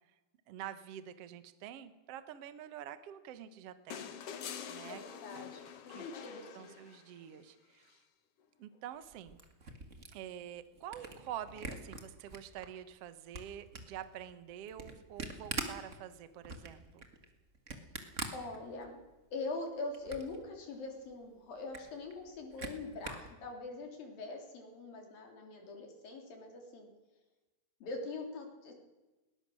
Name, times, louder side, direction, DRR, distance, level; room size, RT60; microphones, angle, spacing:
voice 1, 0.5-4.1 4.7-5.0 5.9-6.1 6.5-8.0 8.6-9.4 10.1-17.1, right 10 dB, 70° right, 11 dB, 1.4 m, -47 dB
sound 1, 3.9-7.2 8.8-8.9, left 8 dB, 80° left, 1.3 m, -46 dB
voice 2, 4.9-6.7 18.3-19.0 19.3-26.9 27.8-28.7, left 3 dB, 60° left, 2 dB, 4.9 m, -43 dB
Camera, 9.0-12.7 13.1-19.1 19.5-20.4 20.8-20.9 21.1-21.2 21.5-23.3, right 3 dB, 40° right, 1.0 m, -44 dB
21.0 x 19.5 x 6.5 m, 1.1 s
omnidirectional pair, 4.7 m